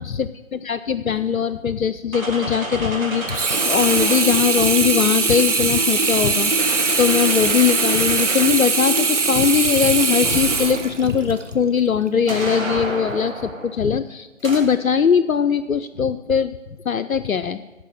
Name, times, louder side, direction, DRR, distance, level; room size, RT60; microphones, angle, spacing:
voice 1, 0.0-16.6 16.9-17.6, left 7 dB, 80° left, 11 dB, 0.6 m, -21 dB
sound 1, 2.1-4.8 5.8-9.1 10.2-11.1 12.3-13.8 14.4-14.6, right 1 dB, 80° right, 3.2 m, -31 dB
Sink (filling or washing), 3.3-11.5 12.1-12.2, right 4 dB, 60° right, 1.0 m, -21 dB
13.0 x 5.0 x 8.8 m, 1.1 s
figure-of-eight pair, 160°, 41 cm